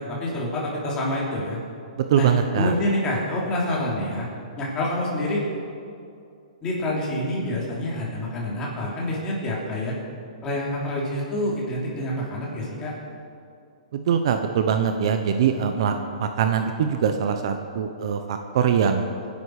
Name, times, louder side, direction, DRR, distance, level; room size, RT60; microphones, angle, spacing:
voice 1, 0.0-1.6 2.1-2.3 2.6-4.3 4.6-5.4 6.6-9.9 10.4-12.9, left 1 dB, 15° left, -4 dB, 3.4 m, -27 dB
voice 2, 2.0-2.8 13.9-15.9 16.2-19.0, right 7 dB, 45° right, 7 dB, 0.9 m, -22 dB
25.0 x 10.5 x 5.0 m, 2.5 s
hypercardioid pair, 165°, 4 cm